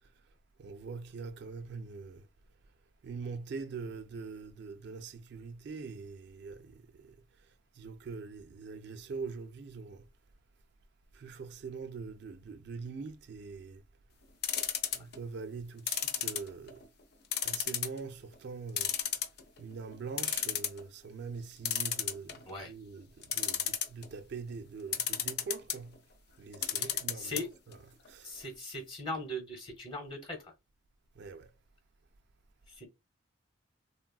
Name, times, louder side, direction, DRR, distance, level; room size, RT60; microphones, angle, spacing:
voice 1, 0.6-2.3 3.0-7.2 7.8-10.1 11.1-13.8 14.9-16.8 17.4-18.9 19.6-26.0 26.4-28.4 31.2-31.5, right 4 dB, 60° right, 0.3 m, -43 dB
sound 1, 14.4-15.2 15.9-16.8 17.3-18.0 18.3-18.4 18.8-19.6 19.9-20.0 20.2-20.8 21.6-22.5 23.2-24.1 24.9-25.8 26.5-27.4 27.7-27.8 28.1-28.2, left 9 dB, 55° left, 0.4 m, -32 dB
voice 2, 26.7-27.5 28.2-30.5 32.7-32.9, left 1 dB, 30° left, 1.0 m, -40 dB
3.2 x 2.3 x 2.3 m
head